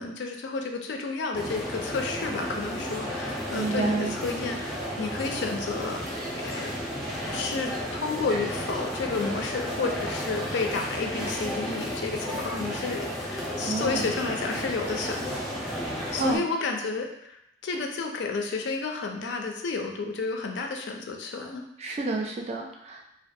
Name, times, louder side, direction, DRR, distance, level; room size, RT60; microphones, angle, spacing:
voice 1, 0.0-6.0 6.3-15.8 16.1-21.6, left 4 dB, 70° left, 3 dB, 0.4 m, -31 dB
sound 1, 1.3-16.4, equal, ahead, 0.6 m, -33 dB
voice 2, 3.5-4.1 13.6-14.1 16.2-16.4 17.7-17.8 21.8-23.0, right 3 dB, 35° right, 1 dB, 0.3 m, -29 dB
2.4 x 2.2 x 2.6 m, 0.80 s
head